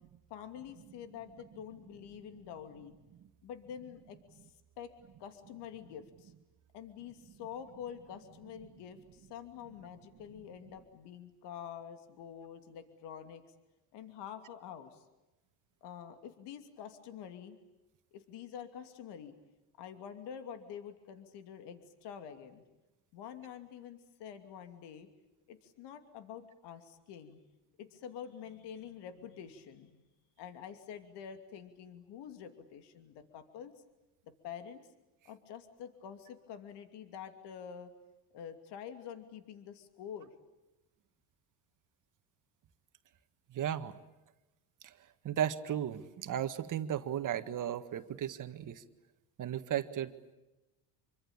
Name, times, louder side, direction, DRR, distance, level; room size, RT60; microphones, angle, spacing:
voice 1, 0.3-2.9 3.4-4.4 4.8-4.9 5.2-6.3 6.7-13.4 13.9-15.0 15.8-17.6 18.1-19.3 19.8-22.6 23.1-25.1 25.5-27.4 27.8-30.1 30.4-33.7 34.2-34.9 35.2-37.9 38.3-40.3, left 8 dB, 65° left, 8 dB, 2.8 m, -47 dB
voice 2, 43.5-43.9 44.8-44.9 45.2-48.8 49.4-50.3, right 10 dB, 45° right, 9 dB, 1.7 m, -35 dB
26.5 x 24.5 x 8.8 m, 1.0 s
cardioid pair, 115°, 44 cm